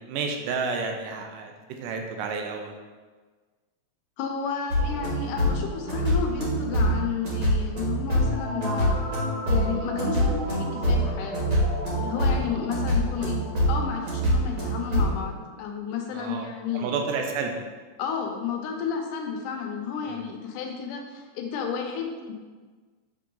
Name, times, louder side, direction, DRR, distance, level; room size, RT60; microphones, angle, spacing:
voice 1, 0.0-2.7 16.1-16.5 16.7-17.6 20.1-20.2, right 4 dB, 90° right, 3 dB, 2.3 m, -31 dB
voice 2, 4.2-9.0 9.5-11.6 12.0-13.4 13.7-16.9 18.0-22.3, left 6 dB, 80° left, 2 dB, 2.2 m, -32 dB
sound 1, 4.7-15.2, equal, 40° right, 1.7 m, -25 dB
7.0 x 3.8 x 3.8 m, 1.4 s
omnidirectional pair, 3.7 m